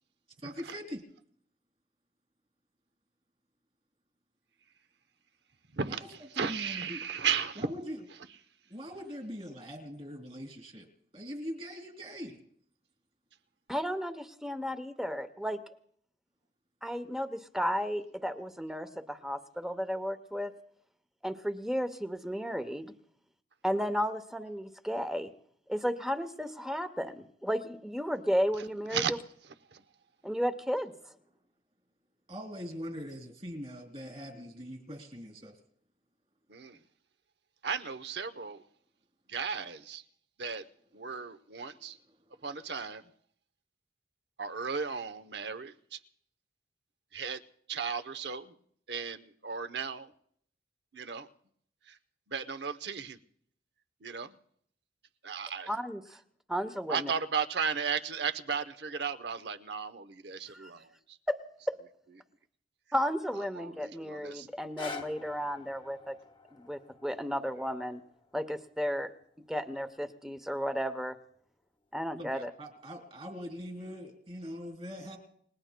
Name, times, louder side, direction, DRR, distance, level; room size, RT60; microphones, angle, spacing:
voice 1, 0.4-1.0 5.8-7.0 7.6-8.0 8.7-10.9 11.1-12.4 32.3-35.6 41.6-42.4 72.1-75.2, equal, 35° right, 2 dB, 2.9 m, -42 dB
voice 2, 5.7-7.7 28.9-29.1 29.7-29.8 36.5-36.8 37.6-38.6 39.3-40.0 40.4-40.6 40.9-42.0 42.4-43.0 44.4-46.0 47.1-47.4 47.7-48.5 48.9-50.1 50.9-51.3 51.9-52.0 52.3-53.2 54.0-54.3 55.2-55.7 56.9-61.2 63.5-64.5, right 6 dB, 70° right, 11 dB, 0.8 m, -35 dB
voice 3, 13.7-15.6 16.8-20.5 21.2-22.9 23.6-25.3 25.7-29.0 30.2-30.9 55.7-56.2 56.5-57.1 60.5-60.7 61.3-61.4 61.7-61.8 62.9-66.1 66.5-68.0 68.3-69.1 69.5-71.2 71.9-72.5, equal, ahead, 9 dB, 0.7 m, -33 dB
sound 1, 64.5-70.6 71.3-71.4, left 3 dB, 25° left, 0.9 m, -48 dB
29.0 x 19.0 x 2.2 m, 0.66 s
head